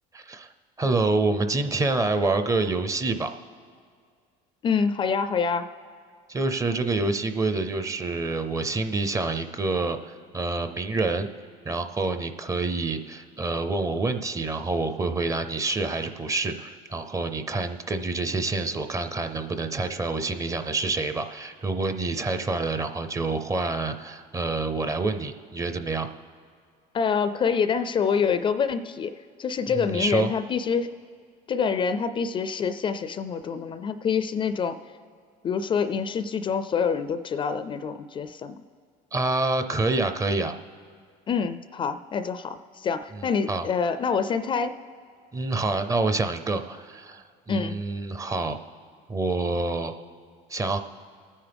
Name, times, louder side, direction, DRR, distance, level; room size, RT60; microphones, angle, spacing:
voice 1, 0.1-0.5 0.8-3.3 6.3-11.3 11.7-26.1 29.7-30.3 39.1-40.6 43.1-43.6 45.3-48.6 49.1-49.9 50.5-50.8, right 3 dB, 20° right, 9 dB, 0.6 m, -27 dB
voice 2, 4.6-5.7 26.9-29.1 29.4-30.9 31.5-34.8 35.4-38.6 41.3-44.7 47.5-47.8, left 6 dB, 30° left, 11 dB, 0.4 m, -26 dB
28.5 x 9.7 x 3.5 m, 2.1 s
cardioid pair, 130°, 16 cm